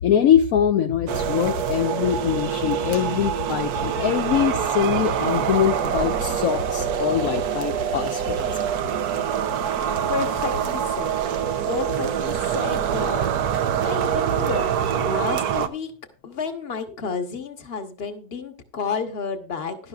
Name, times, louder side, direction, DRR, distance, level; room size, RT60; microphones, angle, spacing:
voice 1, 0.0-8.5, left 9 dB, 70° left, 5 dB, 1.1 m, -23 dB
sound 1, 1.1-15.7, right 8 dB, 80° right, 1.3 m, -25 dB
voice 2, 9.1-9.4 9.7-9.8 10.1-11.1 11.7-13.3 13.6-14.7 15.0-15.9 16.2-19.9, left 5 dB, 40° left, 7 dB, 1.4 m, -31 dB
16.0 x 11.5 x 2.4 m, 0.36 s
omnidirectional pair, 1.6 m